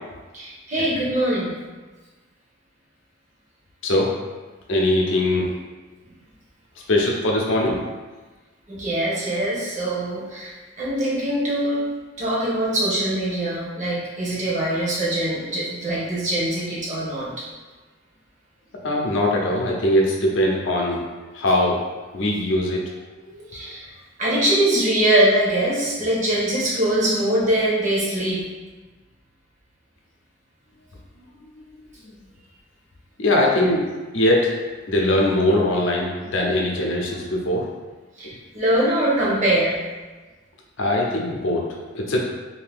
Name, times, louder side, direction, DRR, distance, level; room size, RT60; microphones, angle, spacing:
voice 1, 0.3-1.5 8.7-11.9 12.2-17.4 23.5-23.9 24.2-28.5 33.6-33.7 38.2-39.8, right 1 dB, 40° right, -6 dB, 0.9 m, -22 dB
voice 2, 4.7-5.5 6.9-7.8 18.8-21.0 21.3-21.8 22.1-22.8 23.3-23.5 33.2-33.8 34.1-34.5 34.9-37.7 40.8-41.7 41.9-42.2, left 1 dB, 75° left, -1 dB, 0.6 m, -21 dB
2.8 x 2.6 x 3.4 m, 1.3 s
head